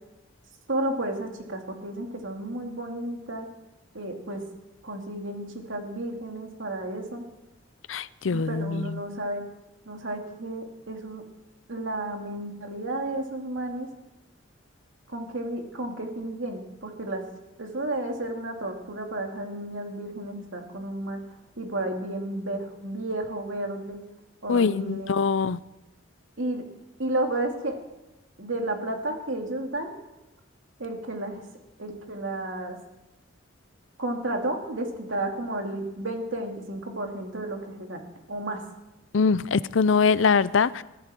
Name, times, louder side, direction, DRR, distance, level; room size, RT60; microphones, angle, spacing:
voice 1, 0.7-3.5 3.9-4.4 4.8-7.2 8.3-9.4 9.9-11.2 11.7-13.9 15.1-17.2 17.6-21.2 21.6-24.0 24.4-25.1 26.4-26.6 27.0-27.8 28.4-29.9 30.8-31.4 31.8-32.8 34.0-38.6, right 1 dB, 75° right, 2 dB, 2.7 m, -32 dB
voice 2, 7.9-9.0 24.5-25.6 39.1-40.8, left 5 dB, 70° left, 18 dB, 0.5 m, -23 dB
22.0 x 14.0 x 4.5 m, 0.98 s
head